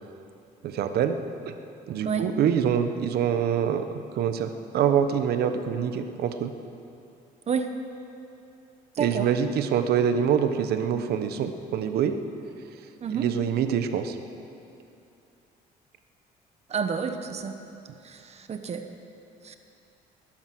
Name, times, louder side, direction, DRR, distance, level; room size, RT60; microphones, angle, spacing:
voice 1, 0.6-1.2 1.9-3.8 4.2-6.5 9.0-12.1 13.1-14.2, right 8 dB, 70° right, 8 dB, 1.1 m, -25 dB
voice 2, 8.9-9.3 13.0-13.2 16.7-17.5 18.0-18.9 19.4-19.6, right 6 dB, 40° right, 7 dB, 1.1 m, -29 dB
20.5 x 10.5 x 6.2 m, 2.7 s
cardioid pair, 110°, 17 cm